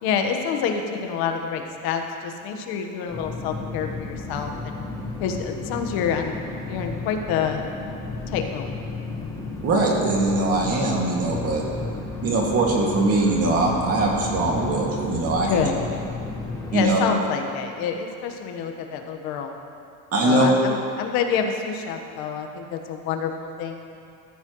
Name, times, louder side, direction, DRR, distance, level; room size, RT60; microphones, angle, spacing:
voice 1, 0.0-4.8 5.2-6.4 6.7-7.7 8.3-8.7 15.5-16.1 16.7-19.5 20.2-23.8, left 6 dB, 65° left, 4 dB, 1.4 m, -27 dB
sound 1, 3.1-16.9, left 3 dB, 10° left, 1.4 m, -33 dB
voice 2, 9.6-11.6 12.2-15.6 16.7-17.0 20.1-20.5, right 2 dB, 35° right, -2 dB, 2.3 m, -21 dB
15.0 x 14.0 x 3.2 m, 2.5 s
cardioid pair, 160°, 39 cm